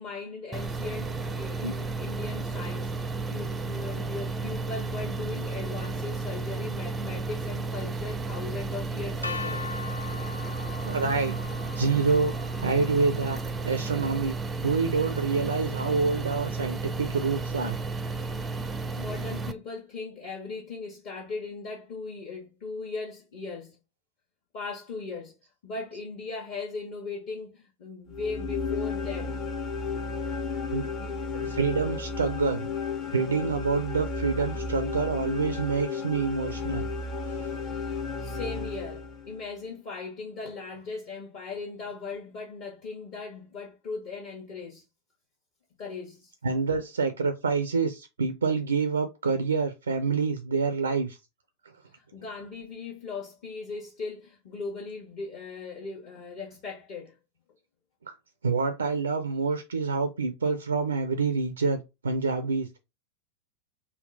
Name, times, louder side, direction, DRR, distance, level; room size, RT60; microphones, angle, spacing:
voice 1, 0.0-9.6 18.5-23.8 24.5-25.4 25.6-29.4 29.9-30.1 31.0-31.2 37.6-44.8 45.8-46.3 51.9-57.2, left 4 dB, 45° left, 1.1 m, -38 dB
sound 1, 0.5-19.5, right 3 dB, 15° right, 0.4 m, -33 dB
sound 2, 9.2-15.1, left 5 dB, 85° left, 0.4 m, -41 dB
voice 2, 10.9-11.4 11.8-12.3 12.6-14.4 14.6-17.8 19.2-19.3 30.7-30.9 31.3-32.7 33.1-36.8 37.3-37.6 46.4-51.2 58.1-58.2 58.4-62.8, right 4 dB, 70° right, 0.4 m, -27 dB
sound 3, 28.1-39.4, left 4 dB, 30° left, 0.7 m, -33 dB
3.6 x 2.2 x 3.8 m
figure-of-eight pair, 90°, 0 cm